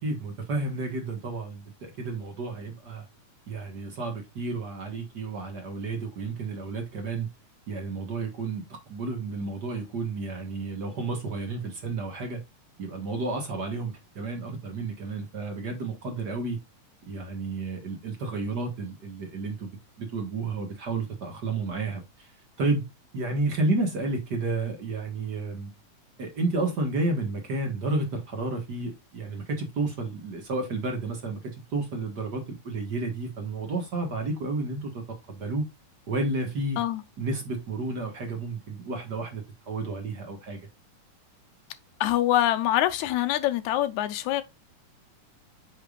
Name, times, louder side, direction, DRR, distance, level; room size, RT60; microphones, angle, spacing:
voice 1, 0.0-3.1 3.5-7.3 7.7-8.6 8.9-12.4 12.8-16.6 17.0-19.7 20.0-22.3 22.6-22.9 23.1-25.7 26.2-31.4 31.7-35.6 36.1-36.8 37.2-40.6, right 3 dB, 50° right, 1.2 m, -31 dB
voice 2, 42.0-44.4, left 13 dB, 80° left, 1.8 m, -24 dB
8.8 x 5.2 x 2.4 m
omnidirectional pair, 3.7 m